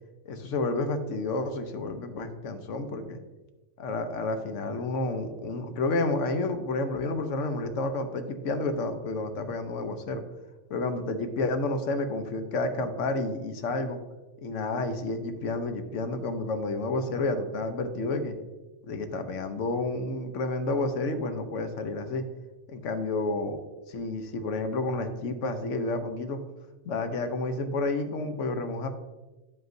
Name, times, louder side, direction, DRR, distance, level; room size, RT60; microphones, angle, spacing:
voice 1, 0.3-3.2 3.8-10.2 10.7-14.0 14.4-18.3 18.8-22.2 22.7-23.6 23.9-26.4 26.8-28.9, left 2 dB, 80° left, 7 dB, 1.1 m, -30 dB
9.6 x 7.8 x 2.6 m, 1.2 s
omnidirectional pair, 1.3 m